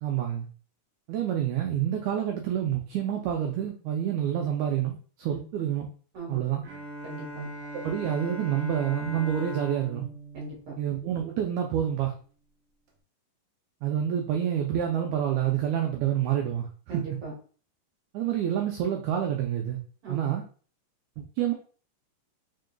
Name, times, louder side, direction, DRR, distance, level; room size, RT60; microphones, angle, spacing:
voice 1, 0.0-0.5 1.1-5.9 6.3-6.6 7.8-10.1 10.8-12.1 13.8-16.7 16.9-17.0 18.1-19.8 20.1-20.4 21.4-21.5, right 10 dB, 90° right, 3 dB, 1.6 m, -28 dB
Bowed string instrument, 6.6-11.5, right 1 dB, 70° right, 1.5 m, -40 dB
voice 2, 7.0-7.5 10.3-10.7 16.9-17.3 20.0-20.4, right 4 dB, 55° right, -2 dB, 1.8 m, -38 dB
4.5 x 3.8 x 2.2 m, 0.42 s
omnidirectional pair, 3.9 m